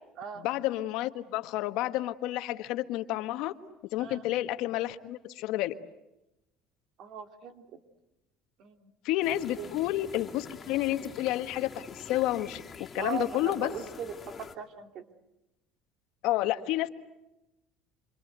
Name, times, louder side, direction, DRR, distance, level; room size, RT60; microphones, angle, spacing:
voice 1, 0.4-3.5 3.9-5.7 9.0-12.6 12.9-13.7 16.2-16.9, left 15 dB, 70° left, 9 dB, 1.5 m, -30 dB
voice 2, 7.0-7.7 8.6-8.9 9.6-9.7 13.0-15.0, right 6 dB, 55° right, 6 dB, 3.1 m, -39 dB
sound 1, 9.2-14.6, left 6 dB, 25° left, 2.8 m, -46 dB
27.5 x 26.5 x 8.1 m, 0.93 s
supercardioid pair, 110°, 0 cm